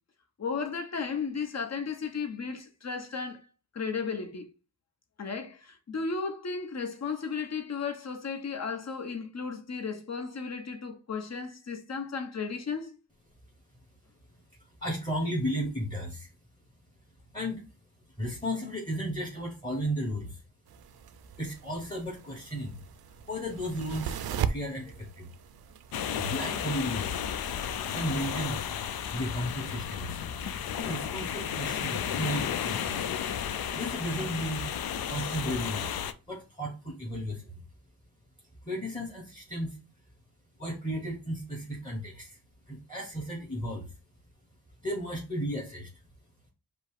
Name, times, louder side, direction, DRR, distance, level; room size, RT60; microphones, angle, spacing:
voice 1, 0.4-3.5 3.7-4.5 5.2-13.0, left 5 dB, 45° left, 0.9 m, -34 dB
voice 2, 14.6-16.3 17.3-17.6 18.2-20.4 21.4-22.8 23.3-25.3 26.2-27.3 27.9-28.6 29.1-30.2 30.8-33.0 33.7-34.7 35.1-35.9 36.3-37.5 38.7-39.8 40.6-42.4 42.7-43.9 44.8-45.9, equal, 10° left, 1.2 m, -34 dB
sound 1, 20.7-34.3, right 8 dB, 75° right, 0.5 m, -42 dB
sound 2, 25.9-36.1, left 9 dB, 75° left, 0.5 m, -33 dB
5.2 x 2.0 x 4.7 m
wide cardioid pair, 115°, 37 cm